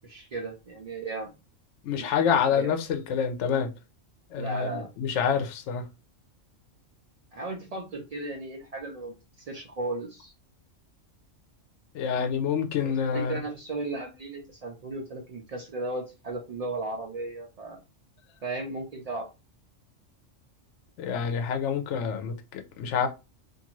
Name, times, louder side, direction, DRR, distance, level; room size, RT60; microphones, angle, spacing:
voice 1, 0.0-1.3 1.9-2.7 4.4-4.9 7.3-10.3 12.8-17.8 18.4-19.3, right 2 dB, 75° right, 0.3 m, -36 dB
voice 2, 1.8-3.7 4.3-4.7 5.0-5.8 11.9-13.3 21.0-23.1, left 7 dB, 70° left, 0.9 m, -27 dB
2.5 x 2.5 x 2.9 m
omnidirectional pair, 1.3 m